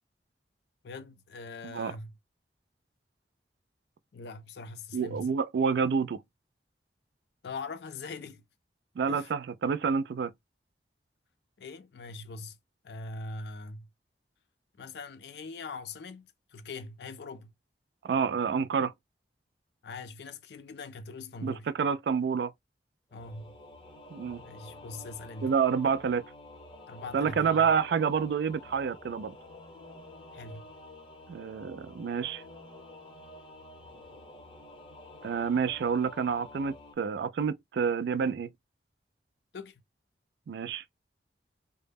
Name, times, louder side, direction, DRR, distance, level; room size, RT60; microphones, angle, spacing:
voice 1, 0.8-2.2 4.1-5.3 7.4-8.5 9.0-9.3 11.6-12.6 12.8-13.9 14.8-17.5 19.8-21.7 23.1-23.5 24.3-25.5 26.9-27.6 30.3-30.7 39.5-39.8, left 3 dB, 65° left, 0.4 m, -42 dB
voice 2, 4.9-6.2 9.0-10.3 18.0-18.9 21.4-22.5 24.1-24.4 25.4-26.2 27.1-29.3 31.3-32.4 35.2-38.5 40.5-40.8, right 6 dB, 70° right, 0.3 m, -28 dB
Singing / Musical instrument, 23.1-36.9, left 2 dB, 30° left, 0.7 m, -50 dB
2.1 x 2.0 x 3.3 m
head